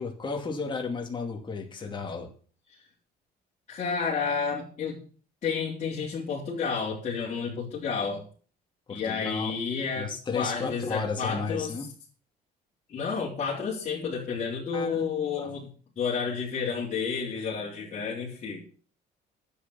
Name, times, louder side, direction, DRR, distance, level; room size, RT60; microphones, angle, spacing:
voice 1, 0.0-2.3 8.9-9.6 9.9-11.9 14.7-15.0 15.4-15.5, left 4 dB, 30° left, 1 dB, 2.5 m, -33 dB
voice 2, 3.7-5.0 5.4-8.2 8.9-11.7 12.9-15.7 16.0-18.6, left 5 dB, 45° left, -6 dB, 3.8 m, -31 dB
10.0 x 8.4 x 7.1 m, 0.42 s
cardioid pair, 110°, 17 cm